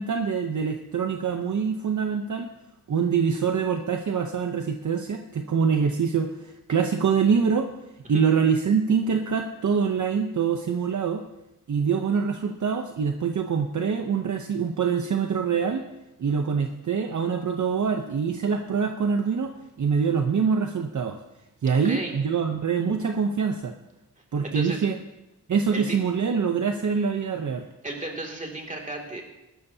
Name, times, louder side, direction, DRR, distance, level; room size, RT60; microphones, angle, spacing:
voice 1, 0.0-2.5 2.9-7.7 8.1-11.2 11.7-15.8 16.2-19.5 19.8-21.2 21.6-23.7 24.3-25.0 25.5-27.6, right 6 dB, 55° right, 5 dB, 0.8 m, -24 dB
voice 2, 24.4-24.8 25.7-26.0 27.8-29.2, right 2 dB, 20° right, 0 dB, 2.5 m, -34 dB
19.0 x 12.5 x 2.8 m, 0.95 s
wide cardioid pair, 120°, 35 cm